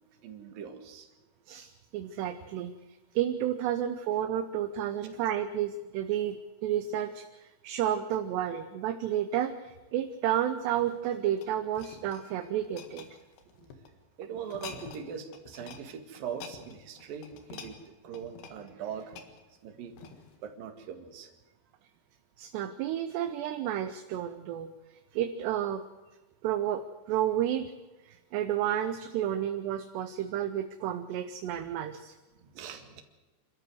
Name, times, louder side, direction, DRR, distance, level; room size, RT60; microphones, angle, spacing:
voice 1, 0.2-1.1 13.6-13.7 14.2-17.8 18.0-19.2 19.6-20.0 20.4-21.3 32.5-33.0, right 7 dB, 55° right, 6 dB, 3.3 m, -41 dB
voice 2, 1.5-2.8 3.1-13.1 22.4-24.7 25.1-25.8 26.4-27.7 28.0-32.1, right 10 dB, 75° right, 9 dB, 2.8 m, -31 dB
sound 1, 10.7-13.9 14.4-15.1 15.3-15.8 16.1-20.4 21.0-21.1, left 6 dB, 70° left, 3.8 m, -48 dB
28.0 x 13.5 x 7.9 m, 1.2 s
omnidirectional pair, 5.3 m